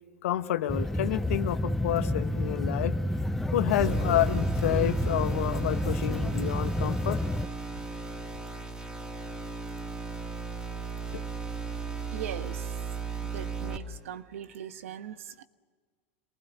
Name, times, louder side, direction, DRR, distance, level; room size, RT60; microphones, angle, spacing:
voice 1, 0.2-3.0 3.5-7.2 11.1-11.2, left 13 dB, 75° left, 10 dB, 1.3 m, -29 dB
sound 1, 0.7-7.5, left 1 dB, 5° left, 0.8 m, -29 dB
sound 2, 3.8-13.8, right 5 dB, 10° right, 3.2 m, -36 dB
voice 2, 12.1-12.7 13.2-15.4, right 10 dB, 80° right, 11 dB, 1.2 m, -40 dB
27.5 x 19.5 x 8.3 m, 1.5 s
hypercardioid pair, 95°, 7 cm